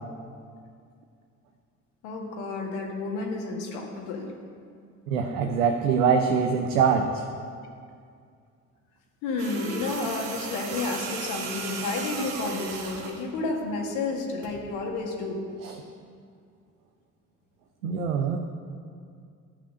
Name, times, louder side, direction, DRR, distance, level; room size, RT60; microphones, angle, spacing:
voice 1, 2.0-4.3 9.2-15.4, left 3 dB, 70° left, 0 dB, 1.9 m, -31 dB
voice 2, 5.1-7.2 15.6-15.7 17.8-18.4, right 6 dB, 80° right, 4 dB, 0.8 m, -23 dB
sound 1, 9.4-13.2 14.4-14.6, right 4 dB, 65° right, 1.5 m, -36 dB
12.0 x 5.8 x 7.8 m, 2.2 s
hypercardioid pair, 50°, 40 cm